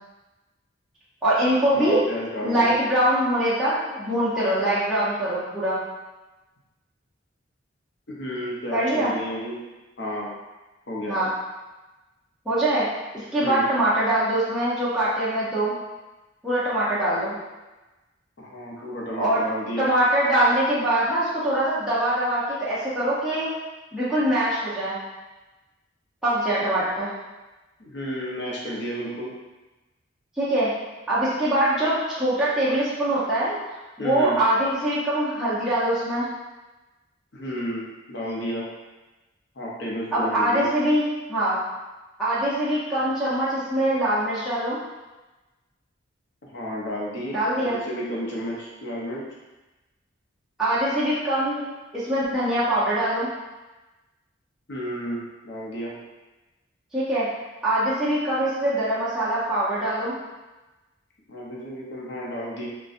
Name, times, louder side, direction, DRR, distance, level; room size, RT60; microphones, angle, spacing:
voice 1, 1.2-2.0 2.4-5.8 8.7-9.1 11.1-11.3 12.5-12.9 13.3-15.7 16.4-17.3 19.2-19.4 19.8-23.5 23.9-25.0 26.2-27.1 30.4-30.7 31.1-33.5 34.0-36.3 40.1-41.6 42.2-44.8 47.3-47.8 50.6-51.6 51.9-53.3 56.9-57.3 57.6-60.2, right 1 dB, 5° right, -13 dB, 0.7 m, -23 dB
voice 2, 1.7-2.7 8.1-9.6 10.0-10.3 10.9-11.2 13.4-13.7 18.4-19.9 27.8-29.3 34.0-34.4 37.3-38.7 39.6-40.6 46.5-49.2 54.7-55.9 61.3-62.7, equal, 60° left, -4 dB, 0.8 m, -32 dB
3.9 x 2.3 x 2.5 m, 1.1 s
head